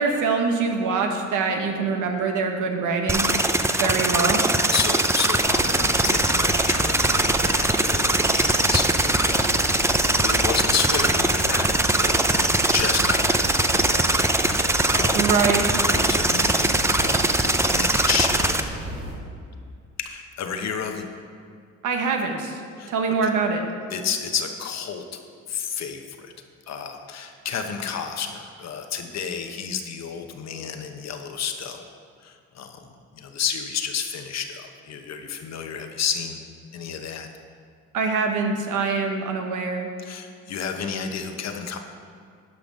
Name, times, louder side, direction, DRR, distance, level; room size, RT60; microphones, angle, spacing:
voice 1, 0.0-3.3 3.8-4.4 15.1-15.7 21.8-22.6 22.9-23.6 37.9-39.9, right 4 dB, 80° right, 3 dB, 1.2 m, -24 dB
sound 1, 3.1-18.6, right 2 dB, 10° right, 0.5 m, -21 dB
voice 2, 4.7-13.4 13.7-14.1 14.3-15.3 15.9-18.5 20.0-21.1 22.8-23.3 23.9-25.2 25.5-26.3 26.7-31.8 32.2-36.4 36.7-37.3 40.0-41.8, left 7 dB, 60° left, 5 dB, 1.0 m, -31 dB
winter early morning short normalized, 5.4-19.2, right 1 dB, 65° right, 2.5 m, -34 dB
10.5 x 5.7 x 5.3 m, 2.2 s
cardioid pair, 90°, 30 cm